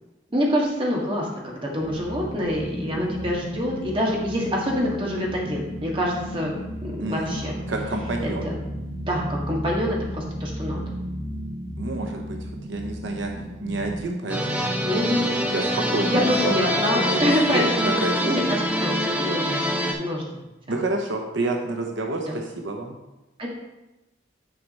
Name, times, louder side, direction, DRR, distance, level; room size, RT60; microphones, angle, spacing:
voice 1, 0.3-6.6 6.8-7.5 8.4-8.5 9.1-10.8 14.8-15.4 16.1-18.0 18.2-19.6 20.0-20.4 22.3-22.4 23.4-23.5, equal, 30° right, -2 dB, 1.6 m, -26 dB
sound 1, 1.8-14.0, equal, 15° left, 1.7 m, -34 dB
voice 2, 7.0-8.5 11.8-12.4 12.7-13.3 13.6-14.7 15.4-16.5 16.9-18.4 20.7-22.9, right 2 dB, 80° right, 2 dB, 0.9 m, -29 dB
sound 2, 14.3-19.9, equal, 10° right, 0.8 m, -25 dB
9.5 x 4.7 x 4.1 m, 0.99 s
head